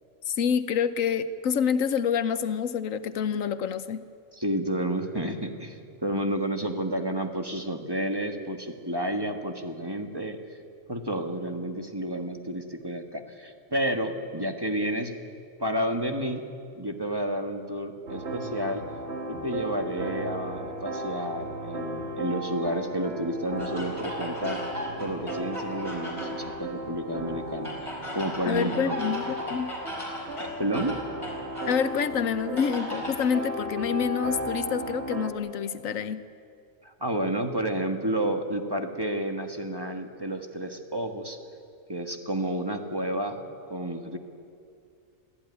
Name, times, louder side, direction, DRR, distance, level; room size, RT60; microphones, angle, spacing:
voice 1, 0.3-4.0 28.4-29.7 31.7-36.2, left 7 dB, 85° left, 12 dB, 1.3 m, -27 dB
voice 2, 4.3-10.6 10.9-15.1 15.6-16.4 16.8-18.8 19.3-24.6 25.0-27.7 28.1-29.0 30.4-31.0 36.8-41.4 41.9-43.4 43.7-44.2, right 1 dB, 20° right, 4 dB, 1.6 m, -30 dB
sound 1, 18.1-35.3, right 1 dB, 60° right, 2.3 m, -35 dB
sound 2, 23.6-26.5 27.6-31.8 32.6-33.3, equal, 25° left, 4.6 m, -37 dB
23.5 x 15.0 x 9.8 m, 2.4 s
omnidirectional pair, 1.3 m